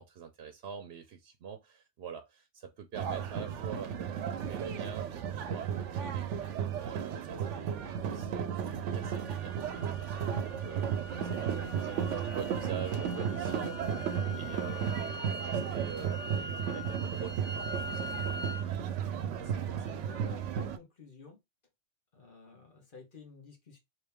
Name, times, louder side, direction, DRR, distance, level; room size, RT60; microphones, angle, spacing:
voice 1, 0.0-4.0 4.3-7.4 7.8-18.4, right 7 dB, 65° right, 0.8 m, -46 dB
sound 1, 2.9-20.8, right 8 dB, 85° right, 1.0 m, -34 dB
sound 2, 9.0-18.7, left 2 dB, 20° left, 0.8 m, -44 dB
voice 2, 19.1-21.4 22.1-23.8, left 4 dB, 45° left, 1.5 m, -52 dB
3.9 x 2.8 x 3.5 m
omnidirectional pair, 1.2 m